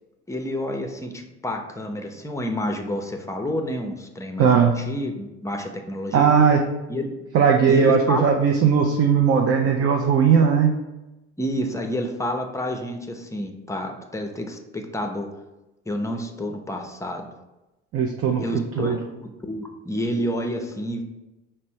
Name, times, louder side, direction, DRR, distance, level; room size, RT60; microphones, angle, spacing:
voice 1, 0.3-6.3 6.9-7.1 7.7-8.2 11.4-15.3 15.9-17.2 18.4-19.1 19.4-21.0, left 1 dB, 10° left, 4 dB, 0.6 m, -29 dB
voice 2, 4.4-4.8 6.1-6.6 7.3-10.8 17.9-18.4 18.8-19.0, right 6 dB, 40° right, 2 dB, 0.5 m, -18 dB
5.0 x 2.1 x 4.4 m, 1.0 s
hypercardioid pair, 70°, 33 cm